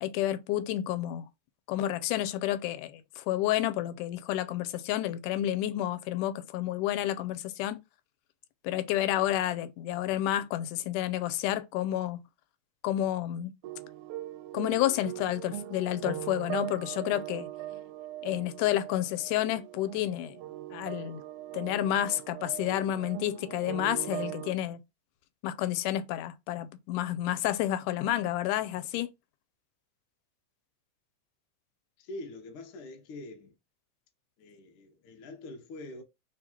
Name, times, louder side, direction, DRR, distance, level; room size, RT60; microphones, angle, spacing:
voice 1, 0.0-1.3 1.7-7.8 8.6-12.2 12.8-13.5 14.5-17.5 18.2-20.4 20.7-21.2 21.5-24.8 25.4-29.1, left 13 dB, 85° left, 2.1 m, -30 dB
sound 1, 13.6-24.5, right 14 dB, 80° right, 1.9 m, -40 dB
voice 2, 32.0-33.5 34.4-36.0, left 2 dB, 60° left, 1.5 m, -44 dB
4.5 x 3.7 x 2.8 m
omnidirectional pair, 3.6 m